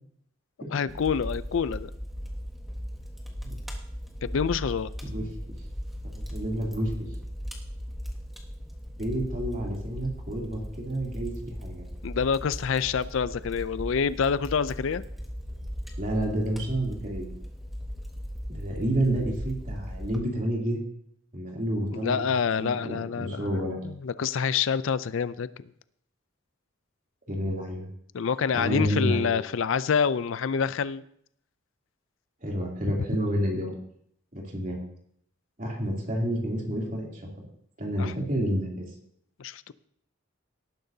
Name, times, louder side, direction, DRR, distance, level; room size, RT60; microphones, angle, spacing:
voice 1, 0.7-1.9 4.2-4.9 12.0-15.0 21.9-25.7 28.1-31.0 32.9-33.0 38.0-38.1 39.4-39.7, left 6 dB, 70° left, 16 dB, 0.4 m, -27 dB
Fire, 0.9-20.2, equal, ahead, 1.4 m, -38 dB
voice 2, 6.1-6.9 9.0-11.3 11.6-11.9 16.0-17.3 18.5-20.8 21.3-22.3 22.6-23.8 27.3-27.9 28.5-29.4 32.4-33.8 34.3-34.8 35.6-37.3 37.8-38.9, right 1 dB, 40° right, -1 dB, 3.0 m, -29 dB
18.5 x 10.5 x 2.8 m, 0.67 s
head